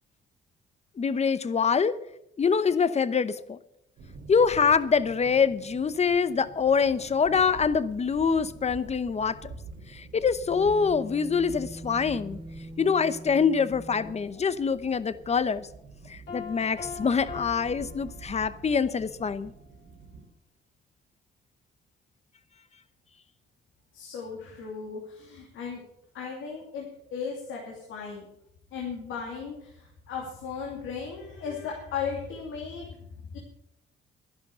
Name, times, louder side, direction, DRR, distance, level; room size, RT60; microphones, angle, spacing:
voice 1, 1.0-2.0 2.4-3.6 4.3-9.5 9.9-12.4 12.8-15.7 16.1-19.5, left 6 dB, 35° left, 15 dB, 0.8 m, -25 dB
sound 1, 4.0-20.3, right 4 dB, 70° right, 2.5 m, -47 dB
sound 2, 10.5-14.4, right 1 dB, 30° right, 1.8 m, -43 dB
Piano, 16.3-18.8, left 6 dB, 70° left, 4.7 m, -42 dB
voice 2, 23.9-25.8 26.1-28.3 28.7-33.4, left 6 dB, 90° left, -2 dB, 2.8 m, -36 dB
11.5 x 11.5 x 6.8 m, 0.81 s
cardioid pair, 90°, 20 cm